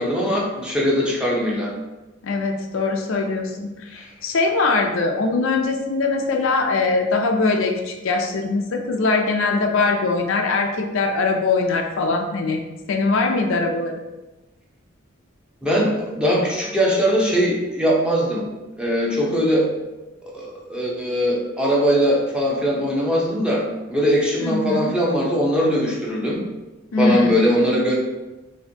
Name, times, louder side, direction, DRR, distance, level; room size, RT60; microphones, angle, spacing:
voice 1, 0.0-1.7 15.6-18.4 18.8-19.7 20.3-23.6 23.9-26.4 27.0-27.9, equal, 5° right, -4 dB, 0.7 m, -20 dB
voice 2, 2.2-12.6 12.9-14.0 24.4-24.9 26.9-27.4, left 3 dB, 70° left, 3 dB, 0.4 m, -22 dB
4.2 x 2.6 x 2.7 m, 1.1 s
head